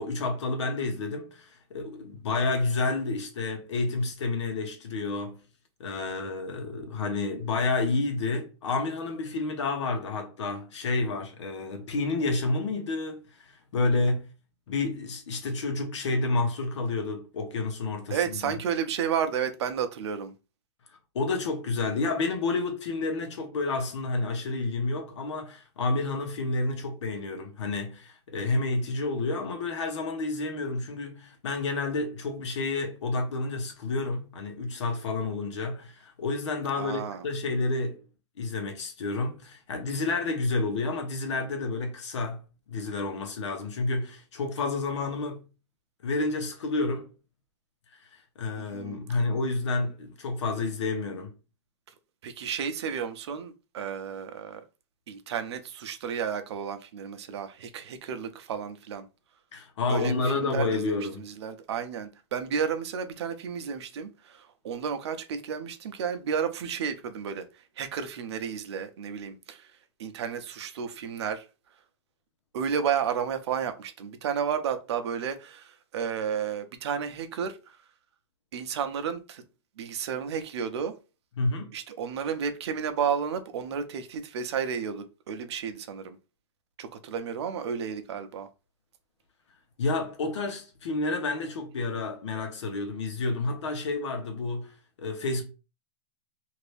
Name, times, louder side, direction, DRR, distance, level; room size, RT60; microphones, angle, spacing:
voice 1, 0.0-5.4 5.8-14.3 14.7-18.5 21.1-38.0 38.4-45.4 46.0-47.1 48.4-51.3 59.5-61.3 81.4-81.7 89.8-95.4, left 3 dB, 85° left, 1.1 m, -30 dB
voice 2, 18.1-20.3 36.8-37.3 48.6-49.0 52.2-54.6 55.1-59.1 59.9-69.7 70.0-71.5 72.5-77.8 78.5-79.4 79.8-80.9 81.7-86.2 86.8-88.5, right 7 dB, 70° right, 0.6 m, -32 dB
2.8 x 2.6 x 3.3 m
supercardioid pair, 160°, 15 cm